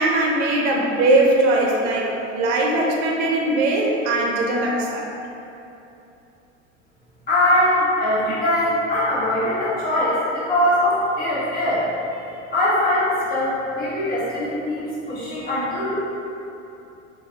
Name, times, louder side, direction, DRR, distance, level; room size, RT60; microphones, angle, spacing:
voice 1, 0.0-5.0, right 2 dB, 65° right, -1 dB, 0.6 m, -20 dB
voice 2, 7.3-11.8 12.2-12.3 12.5-15.9, left 1 dB, 25° left, -11 dB, 1.3 m, -21 dB
3.1 x 2.2 x 2.8 m, 2.9 s
hypercardioid pair, 80°, 37 cm